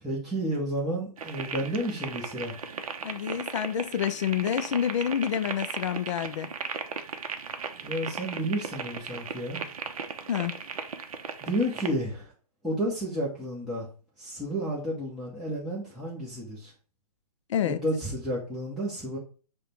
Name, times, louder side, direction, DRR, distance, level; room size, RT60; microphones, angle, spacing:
voice 1, 0.0-2.5 7.8-9.7 11.4-12.3 12.6-13.9 14.2-16.7 17.6-19.2, equal, ahead, 0.7 m, -31 dB
sound 1, 1.2-11.9, right 6 dB, 60° right, 0.6 m, -37 dB
voice 2, 3.0-6.5 10.3-10.5 17.5-17.8, left 9 dB, 50° left, 0.4 m, -28 dB
4.9 x 2.2 x 4.1 m
hypercardioid pair, 140°, 20 cm